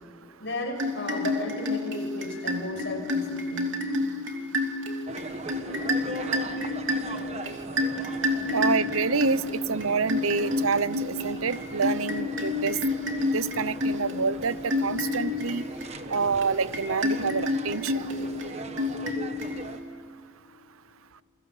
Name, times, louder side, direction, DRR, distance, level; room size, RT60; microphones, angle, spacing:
voice 1, 0.4-3.7, left 1 dB, 55° left, 3 dB, 6.3 m, -34 dB
sound 1, 0.7-20.0, left 2 dB, 65° right, 3.1 m, -30 dB
sound 2, 5.1-19.8, right 2 dB, 30° right, 1.3 m, -40 dB
voice 2, 8.5-12.8 13.3-15.6 16.1-18.1, right 5 dB, 90° right, 17 dB, 0.7 m, -27 dB
29.0 x 23.5 x 8.0 m, 2.3 s
head